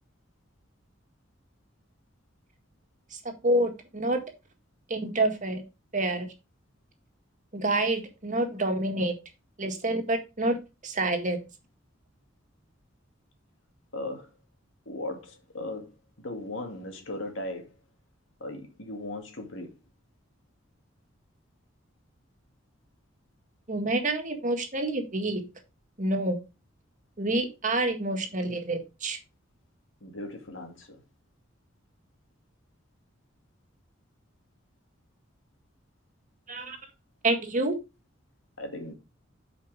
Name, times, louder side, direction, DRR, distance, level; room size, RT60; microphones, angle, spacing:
voice 1, 3.4-4.2 4.9-5.6 5.9-6.3 7.5-9.1 9.6-10.6 10.8-11.4 23.7-25.4 26.0-26.4 27.2-29.2 36.5-36.8 37.2-37.7, right 2 dB, 40° right, 1.8 m, -27 dB
voice 2, 13.9-14.3 14.9-17.7 18.4-19.7 30.0-31.0 38.6-38.9, left 2 dB, 70° left, 2.3 m, -37 dB
8.6 x 5.2 x 4.8 m
head